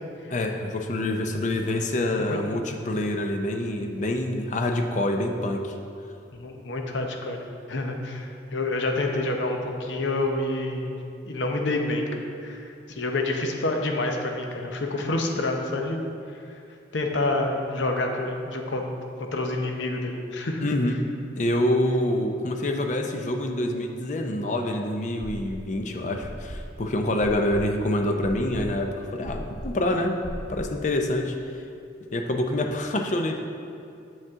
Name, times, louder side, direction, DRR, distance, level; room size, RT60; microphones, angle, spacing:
voice 1, 0.3-5.8 20.6-21.0 21.3-30.2 30.5-31.4 32.1-33.4, left 1 dB, 40° left, 3 dB, 0.5 m, -26 dB
voice 2, 6.3-11.0 11.2-12.1 12.4-16.0 16.3-16.6 16.9-19.0 19.3-20.7, left 2 dB, 75° left, 3 dB, 0.7 m, -28 dB
sound 1, 25.2-25.8 26.2-30.8, equal, 80° right, 0.8 m, -38 dB
7.4 x 5.3 x 3.6 m, 2.5 s
head